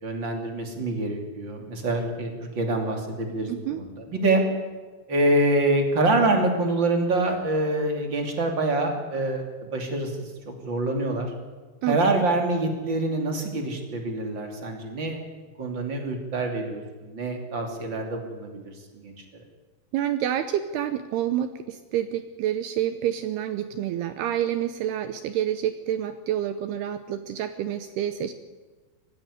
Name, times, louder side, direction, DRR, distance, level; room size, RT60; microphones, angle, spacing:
voice 1, 0.0-4.4 5.1-11.3 11.9-15.2 15.6-18.7 19.0-19.4, right 2 dB, 30° right, 3 dB, 2.8 m, -26 dB
voice 2, 3.5-3.8 11.8-12.2 19.9-28.3, right 11 dB, 80° right, 10 dB, 2.4 m, -28 dB
20.0 x 15.5 x 9.8 m, 1.3 s
omnidirectional pair, 5.6 m